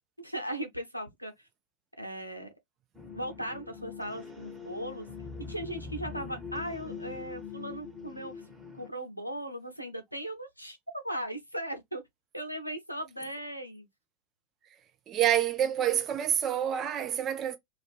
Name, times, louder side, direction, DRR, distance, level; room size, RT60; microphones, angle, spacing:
voice 1, 0.2-1.5 2.0-2.5 3.1-5.1 5.5-8.4 8.7-12.0 12.3-13.9, right 1 dB, 90° left, 0.7 m, -38 dB
sound 1, 2.9-8.9, left 5 dB, 10° right, 1.3 m, -43 dB
voice 2, 15.1-17.6, right 10 dB, 30° right, 0.5 m, -27 dB
2.5 x 2.4 x 3.4 m
figure-of-eight pair, 90°, 0 cm